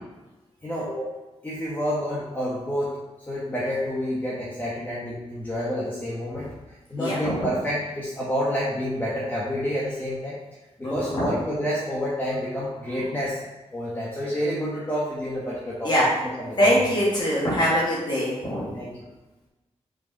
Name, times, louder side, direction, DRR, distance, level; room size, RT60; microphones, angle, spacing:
voice 1, 0.6-1.1 1.4-2.9 3.3-6.5 6.9-10.4 10.8-13.4 13.7-15.9 16.4-16.8 18.7-18.9, equal, 15° left, -7 dB, 1.3 m, -29 dB
voice 2, 7.0-7.5 10.8-11.3 15.8-16.0 16.6-18.7, equal, 40° left, -8 dB, 2.1 m, -23 dB
5.5 x 5.2 x 4.7 m, 1.1 s
wide cardioid pair, 130°, 12 cm